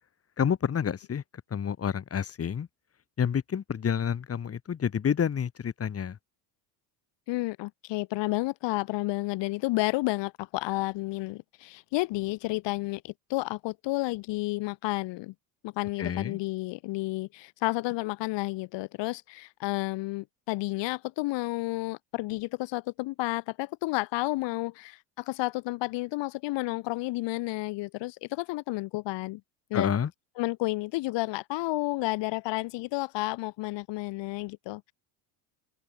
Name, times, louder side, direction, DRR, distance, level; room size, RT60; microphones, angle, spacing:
voice 1, 0.4-1.2 1.5-2.7 3.2-6.2 16.0-16.4 29.7-30.1, left 8 dB, 30° left, 2.4 m, -29 dB
voice 2, 7.3-15.3 15.6-29.4 29.7-29.9 30.4-34.9, left 21 dB, 60° left, 1.5 m, -31 dB
supercardioid pair, 110°, 48 cm